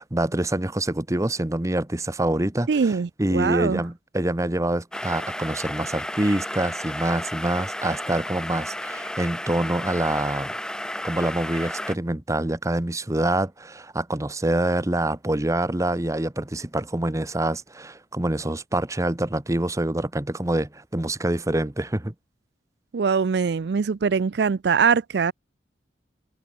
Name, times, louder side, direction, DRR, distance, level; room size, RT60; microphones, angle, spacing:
voice 1, 0.0-10.5 11.0-22.1, right 1 dB, 20° right, 0.9 m, -26 dB
voice 2, 2.7-3.8 22.9-25.3, right 5 dB, 65° right, 0.4 m, -22 dB
sound 1, 4.9-12.0, left 1 dB, 5° left, 1.7 m, -33 dB
head